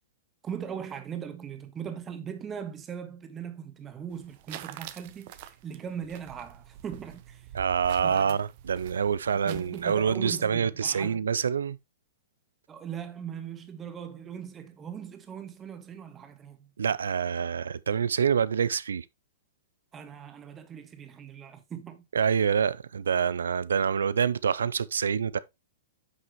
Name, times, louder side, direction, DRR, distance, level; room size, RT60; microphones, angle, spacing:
voice 1, 0.4-7.4 8.0-8.4 9.4-11.2 12.7-16.7 19.9-22.0, right 8 dB, 20° right, 1.5 m, -39 dB
sound 1, 4.1-10.1, right 12 dB, 50° right, 0.8 m, -46 dB
voice 2, 7.5-11.8 16.8-19.1 22.1-25.4, right 7 dB, 75° right, 0.4 m, -26 dB
9.3 x 6.1 x 3.1 m
hypercardioid pair, 110°, 0 cm